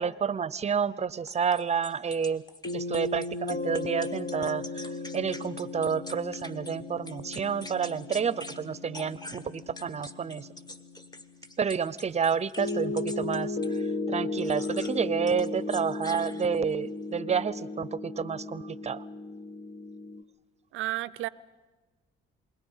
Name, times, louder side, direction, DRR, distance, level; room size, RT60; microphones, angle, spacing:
voice 1, 0.0-2.4 2.7-10.5 11.6-19.0, right 6 dB, 35° right, 19 dB, 0.7 m, -30 dB
sound 1, 1.3-6.8 7.1-8.6 8.9-13.8 14.4-15.0 15.3-16.7, left 1 dB, 20° left, 1.3 m, -45 dB
sound 2, 2.6-11.3 12.6-20.2, left 2 dB, 55° left, 1.2 m, -36 dB
voice 2, 20.7-21.3, right 16 dB, 85° right, 19 dB, 0.6 m, -32 dB
27.5 x 21.0 x 5.6 m, 1.2 s
cardioid pair, 90°, 20 cm